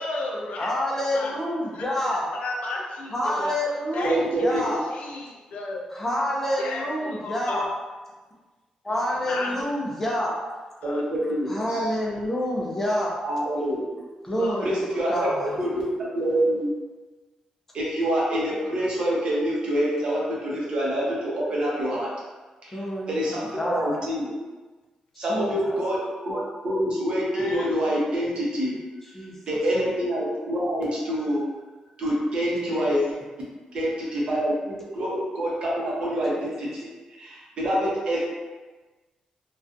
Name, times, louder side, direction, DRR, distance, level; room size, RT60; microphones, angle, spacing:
voice 1, 0.0-0.7 1.1-1.3 1.7-3.5 3.9-5.8 6.6-7.7 9.3-9.6 10.8-11.0 14.4-14.7 15.2-15.3 27.3-27.7 32.6-32.9, left 2 dB, 75° left, -1 dB, 0.5 m, -33 dB
voice 2, 0.6-2.3 3.1-4.8 5.9-7.6 8.9-10.4 11.2-13.1 14.2-14.7 15.1-15.5 22.7-24.0 25.2-25.8 29.1-29.3, equal, 15° left, -4 dB, 0.4 m, -28 dB
voice 3, 4.0-4.7 10.8-11.8 13.2-13.9 14.6-16.7 17.7-22.1 22.6-22.8 23.1-24.4 25.2-26.0 26.2-28.8 29.5-31.4 32.0-33.0 33.7-34.5 34.9-36.9 37.2-38.2, equal, 45° right, -5 dB, 0.7 m, -26 dB
2.5 x 2.2 x 2.5 m, 1.3 s
wide cardioid pair, 160°, 2 cm